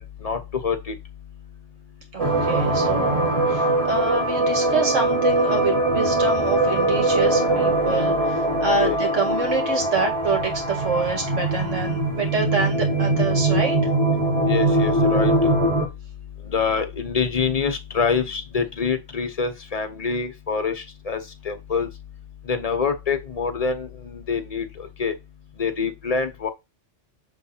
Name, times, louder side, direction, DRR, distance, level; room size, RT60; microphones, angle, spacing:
voice 1, 0.2-0.9 8.8-9.0 14.5-15.5 16.5-21.2 21.4-21.9 22.5-25.1 25.6-26.5, left 5 dB, 35° left, 0.9 m, -25 dB
voice 2, 2.1-13.8, right 4 dB, 80° right, 2.3 m, -26 dB
sound 1, 2.2-15.9, right 1 dB, 30° right, 1.9 m, -21 dB
6.6 x 3.6 x 4.3 m
omnidirectional pair, 1.3 m